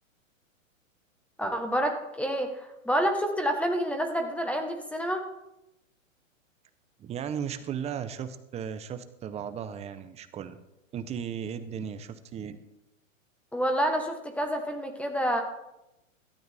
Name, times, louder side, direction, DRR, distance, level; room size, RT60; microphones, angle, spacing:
voice 1, 1.4-5.2 13.5-15.4, equal, 5° left, 5 dB, 1.3 m, -28 dB
voice 2, 7.0-10.6 10.9-12.6, right 8 dB, 15° right, 11 dB, 0.8 m, -36 dB
17.0 x 12.5 x 3.5 m, 0.93 s
hypercardioid pair, 135°, 40 cm